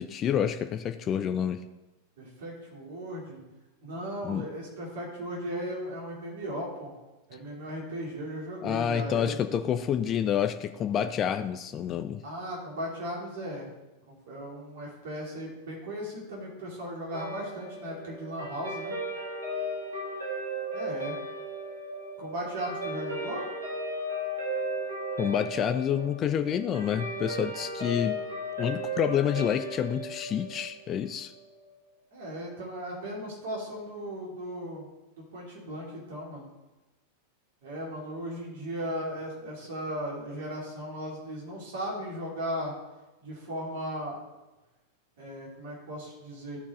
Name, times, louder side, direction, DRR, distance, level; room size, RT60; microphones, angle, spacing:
voice 1, 0.0-1.6 4.2-4.5 8.6-12.2 25.2-28.2 28.6-31.3, left 9 dB, 30° left, 9 dB, 0.4 m, -28 dB
voice 2, 2.2-3.4 3.8-6.9 7.3-9.4 12.2-13.7 14.1-18.9 20.7-21.1 22.2-23.4 32.1-34.9 35.2-36.5 37.6-42.7 43.2-44.2 45.2-46.6, equal, 55° right, -3 dB, 3.0 m, -37 dB
Guitar, 17.1-31.7, equal, 70° right, 3.3 m, -36 dB
13.5 x 4.7 x 4.2 m, 1.1 s
figure-of-eight pair, 90°, 0 cm